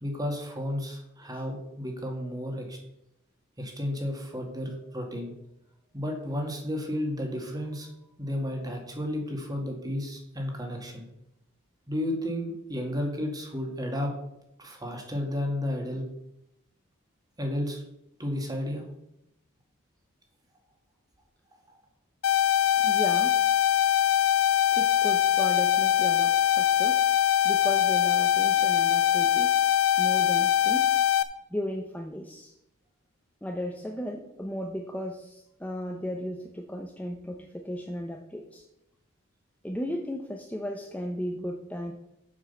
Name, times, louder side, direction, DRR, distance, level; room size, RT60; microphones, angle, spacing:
voice 1, 0.0-2.8 3.6-5.3 5.9-7.9 8.2-11.1 11.9-14.1 14.6-16.1 17.4-17.8 18.2-18.8, left 1 dB, 20° right, 2 dB, 1.9 m, -32 dB
sound 1, 22.2-31.2, left 11 dB, 80° left, 0.7 m, -22 dB
voice 2, 22.8-23.4 24.7-27.0 27.4-29.7 30.0-31.0 31.5-32.5 33.4-38.7 39.6-41.9, equal, 5° left, 2 dB, 0.7 m, -35 dB
7.5 x 6.1 x 6.9 m, 0.83 s
head